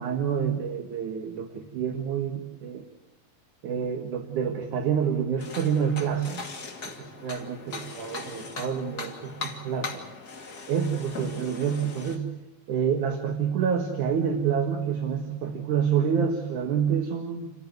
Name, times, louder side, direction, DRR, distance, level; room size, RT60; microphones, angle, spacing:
voice 1, 0.0-2.8 3.6-6.5 6.8-10.1 10.7-12.3 12.7-17.5, right 7 dB, 65° right, 4 dB, 3.0 m, -28 dB
sound 1, 5.4-12.2, left 4 dB, 30° left, 2.5 m, -39 dB
29.5 x 14.5 x 9.5 m, 0.97 s
omnidirectional pair, 4.0 m